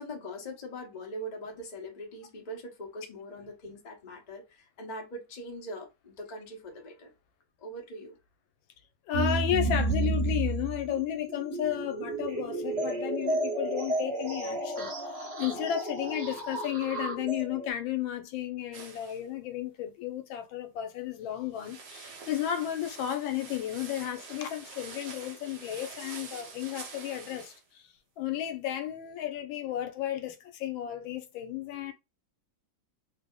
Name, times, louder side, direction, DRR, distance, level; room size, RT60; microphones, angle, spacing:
voice 1, 0.0-7.1 7.6-8.2, equal, 35° left, 0.7 m, -42 dB
voice 2, 9.1-27.8 28.2-31.9, left 11 dB, 80° left, 1.4 m, -33 dB
sound 1, 9.1-17.7, right 2 dB, 45° right, 0.9 m, -32 dB
sound 2, 18.7-19.2 21.5-27.6, right 4 dB, 70° right, 1.6 m, -46 dB
3.5 x 2.0 x 3.6 m
omnidirectional pair, 2.1 m